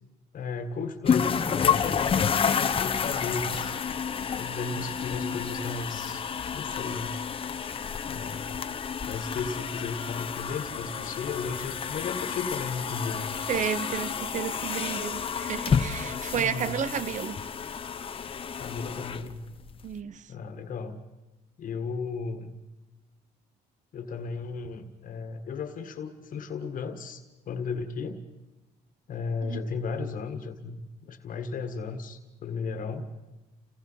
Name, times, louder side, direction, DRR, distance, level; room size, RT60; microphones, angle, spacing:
voice 1, 0.3-3.8 4.4-6.3 6.5-7.2 8.1-8.6 9.0-13.3 16.3-16.8 18.6-19.4 20.3-21.0 21.6-22.6 23.9-28.2 29.1-33.1, left 4 dB, 50° left, 1.8 m, -35 dB
sound 1, 1.1-19.9, left 7 dB, 30° left, 1.0 m, -30 dB
voice 2, 13.5-17.4 19.8-20.3 29.4-29.6, right 8 dB, 45° right, 0.8 m, -32 dB
29.5 x 18.5 x 5.7 m
cardioid pair, 110°, 17 cm